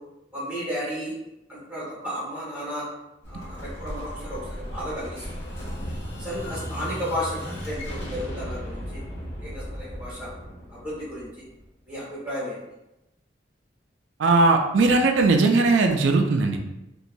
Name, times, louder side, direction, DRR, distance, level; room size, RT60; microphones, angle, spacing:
voice 1, 0.3-1.1 1.5-2.9 3.3-5.4 6.2-9.0 9.4-10.3 10.7-11.4 11.9-12.6, equal, 10° right, -9 dB, 1.5 m, -33 dB
Explosion, 3.2-11.9, equal, 75° left, 0.7 m, -36 dB
voice 2, 14.2-16.6, right 3 dB, 85° right, 4 dB, 0.4 m, -19 dB
2.9 x 2.2 x 2.6 m, 0.92 s
head